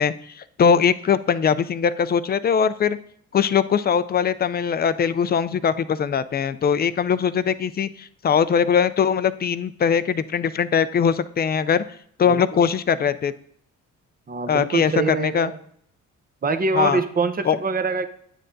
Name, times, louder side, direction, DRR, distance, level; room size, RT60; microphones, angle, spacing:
voice 1, 0.0-3.0 3.3-11.8 12.2-13.3 14.5-15.5 16.7-17.0 17.4-17.6, left 7 dB, 35° left, 14 dB, 0.4 m, -21 dB
voice 2, 12.3-12.7 14.3-15.6 16.4-18.1, right 4 dB, 30° right, 8 dB, 0.7 m, -24 dB
9.8 x 7.6 x 2.6 m, 0.66 s
cardioid pair, 90°, 30 cm